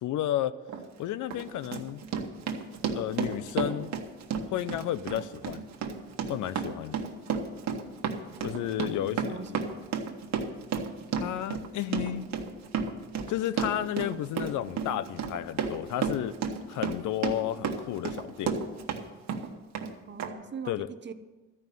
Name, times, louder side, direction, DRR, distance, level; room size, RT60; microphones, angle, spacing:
voice 1, 0.0-0.5 1.0-2.0 2.9-3.9 4.5-5.6 6.3-7.0 8.4-9.7 11.2-12.3 13.3-16.4 16.7-18.5 20.7-20.9, left 12 dB, 80° left, 15 dB, 0.6 m, -32 dB
Run, 0.7-0.8 1.3-19.0 19.3-19.9 20.2-20.3, right 6 dB, 65° right, 1.4 m, -32 dB
voice 2, 9.0-9.5 20.1-21.1, right 6 dB, 35° right, 10 dB, 0.8 m, -41 dB
13.0 x 5.5 x 9.2 m, 1.2 s
cardioid pair, 90°, 30 cm